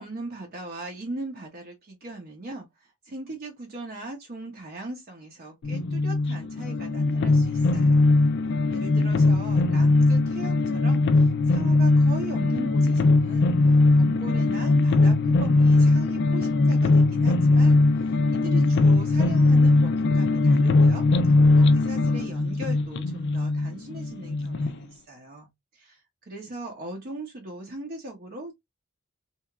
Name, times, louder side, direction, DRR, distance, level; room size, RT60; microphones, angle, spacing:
voice 1, 0.0-8.1 8.7-28.5, right 2 dB, 40° right, 0.7 m, -39 dB
sound 1, 5.6-24.7, left 2 dB, 50° left, 0.3 m, -20 dB
2.9 x 2.4 x 2.3 m
head